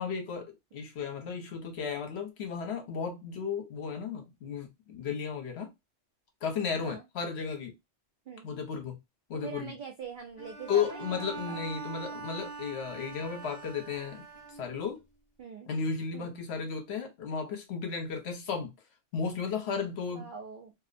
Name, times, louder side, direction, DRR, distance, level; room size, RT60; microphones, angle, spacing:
voice 1, 0.0-5.7 6.4-7.7 8.4-9.0 9.3-9.7 10.7-14.2 14.5-15.0 15.7-18.7 19.1-20.3, left 6 dB, 65° left, 1.0 m, -34 dB
voice 2, 9.4-11.6 15.4-15.7 16.1-16.3 20.1-20.7, right 5 dB, 60° right, 0.5 m, -43 dB
Bowed string instrument, 10.4-15.0, right 4 dB, 40° left, 0.9 m, -43 dB
2.6 x 2.0 x 2.4 m
omnidirectional pair, 1.2 m